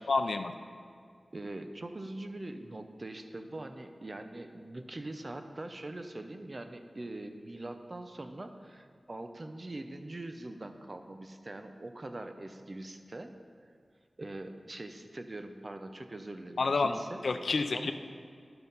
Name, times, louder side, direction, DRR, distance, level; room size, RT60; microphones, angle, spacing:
voice 1, 0.1-0.6 16.6-17.0 17.2-17.9, left 3 dB, 85° left, 7 dB, 0.5 m, -29 dB
voice 2, 1.3-13.4 14.2-17.2 17.7-17.9, right 2 dB, 40° right, 7 dB, 0.7 m, -43 dB
11.5 x 5.8 x 5.4 m, 2.3 s
wide cardioid pair, 85°, 0 cm